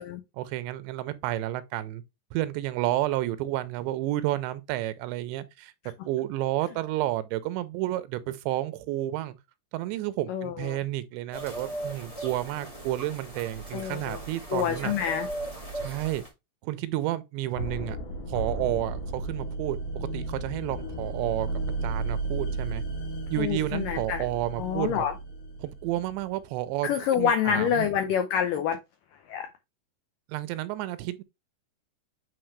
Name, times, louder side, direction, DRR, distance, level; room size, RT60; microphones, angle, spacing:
voice 1, 0.4-2.0 2.3-5.7 6.1-9.4 9.7-14.9 15.8-16.2 16.6-18.0 18.3-21.5 21.8-22.8 23.3-25.1 25.6-27.9 30.3-31.2, right 15 dB, 90° right, 3.0 m, -31 dB
voice 2, 10.3-10.8 13.7-14.2 14.5-15.3 23.4-24.2 24.6-25.1 26.8-28.8 29.3-29.5, left 8 dB, 90° left, 1.9 m, -27 dB
sound 1, 11.3-16.3, right 1 dB, 15° left, 1.1 m, -38 dB
sound 2, 17.6-26.4, right 2 dB, 55° left, 2.6 m, -34 dB
9.1 x 3.9 x 3.2 m
omnidirectional pair, 5.0 m